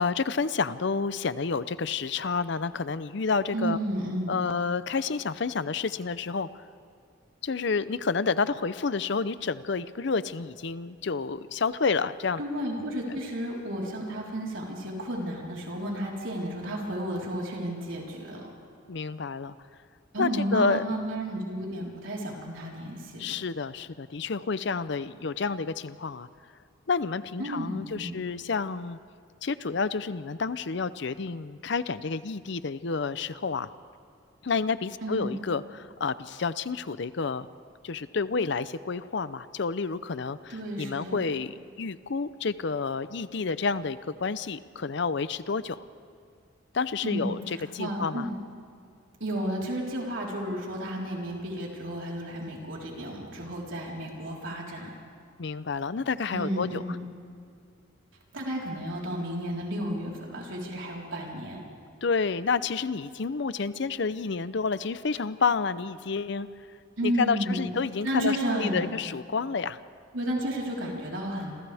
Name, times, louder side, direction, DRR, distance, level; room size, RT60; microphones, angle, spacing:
voice 1, 0.0-3.8 4.3-6.5 7.4-12.4 18.9-19.6 20.2-20.8 23.2-26.3 26.9-29.0 29.4-33.7 34.4-37.5 37.8-45.8 46.7-48.3 55.4-56.8 62.0-66.5 67.0-69.8, left 4 dB, 65° left, 14 dB, 0.6 m, -29 dB
voice 2, 3.5-4.4 12.4-18.5 20.1-23.3 27.4-28.1 35.0-35.4 40.5-41.2 47.0-48.3 49.2-54.9 56.3-57.0 58.3-61.6 67.0-67.7 68.0-68.9 70.1-71.5, right 1 dB, 85° right, -3 dB, 4.1 m, -32 dB
27.5 x 27.0 x 3.5 m, 2.4 s
head